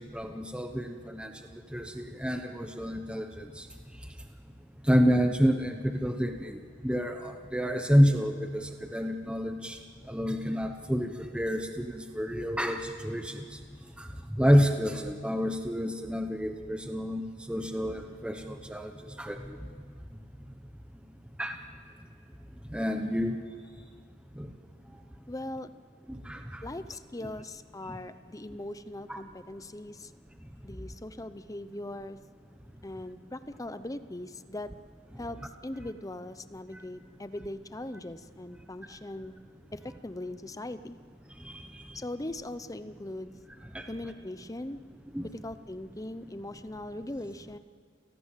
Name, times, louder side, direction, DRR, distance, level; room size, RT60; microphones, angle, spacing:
voice 1, 0.0-3.7 4.8-6.6 6.8-9.8 10.1-13.6 14.0-14.1 14.4-19.6 21.4-21.6 22.7-23.4 24.4-24.5 26.1-26.6 27.9-28.0 29.1-29.2 41.4-42.0 43.7-43.9 45.1-45.3, equal, 5° right, 5 dB, 1.0 m, -29 dB
voice 2, 25.3-25.7 26.6-30.1 30.6-32.2 32.8-34.7 35.2-39.3 39.7-41.0 41.9-43.3 43.9-44.8 45.3-47.6, left 1 dB, 15° left, 12 dB, 0.8 m, -40 dB
29.0 x 18.0 x 7.5 m, 2.1 s
head